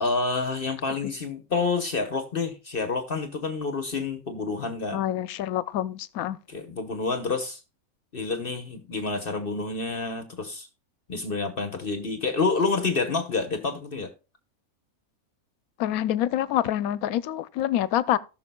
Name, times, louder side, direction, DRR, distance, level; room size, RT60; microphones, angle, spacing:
voice 1, 0.0-5.0 6.5-7.6 8.1-10.7 11.1-14.1, left 4 dB, 45° left, 1.1 m, -28 dB
voice 2, 4.9-6.4 15.8-18.2, left 12 dB, 80° left, 1.0 m, -26 dB
18.0 x 6.1 x 2.2 m
omnidirectional pair, 1.5 m